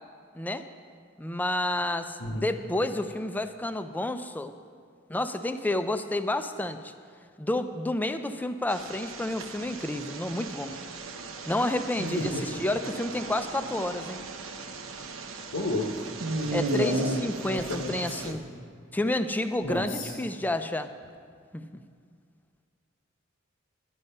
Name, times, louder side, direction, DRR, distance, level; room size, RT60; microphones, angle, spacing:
voice 1, 1.2-4.5 5.1-6.9 7.4-10.8 11.5-14.2 16.5-18.4 18.9-20.9 21.5-21.6, left 1 dB, 10° left, 9 dB, 0.4 m, -30 dB
sound 1, 8.7-18.3, right 2 dB, 80° right, 0.9 m, -35 dB
voice 2, 12.2-12.6 15.5-16.1 16.4-18.4 19.6-20.1, left 1 dB, 90° left, -1 dB, 1.1 m, -33 dB
11.0 x 10.5 x 5.5 m, 2.1 s
head